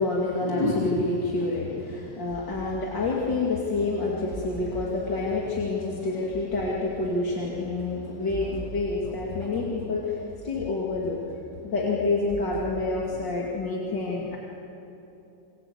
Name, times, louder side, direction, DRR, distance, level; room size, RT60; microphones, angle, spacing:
voice 1, 0.0-11.2 11.6-14.4, left 3 dB, 75° left, -3 dB, 3.2 m, -28 dB
sound 1, 0.9-13.3, equal, 25° left, 7.3 m, -42 dB
28.5 x 23.0 x 8.7 m, 3.0 s
omnidirectional pair, 2.0 m